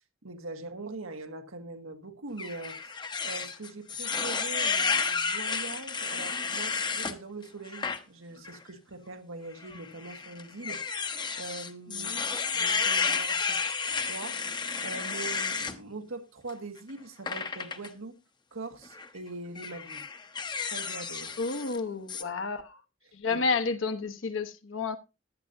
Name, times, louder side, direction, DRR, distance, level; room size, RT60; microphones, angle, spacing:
voice 1, 0.2-3.0 3.2-12.2 12.5-18.2 18.5-20.0 20.6-21.3 23.1-23.4, right 3 dB, 90° right, 1.6 m, -42 dB
sound 1, 2.4-7.2 7.7-8.0 8.4-8.6 9.6-15.8 17.3-17.9 18.8-19.1 19.6-21.8 22.1-22.2, left 5 dB, 20° left, 0.8 m, -31 dB
voice 2, 11.9-12.3 21.4-22.8 23.1-25.0, left 4 dB, 70° left, 1.1 m, -31 dB
15.5 x 11.0 x 2.7 m
head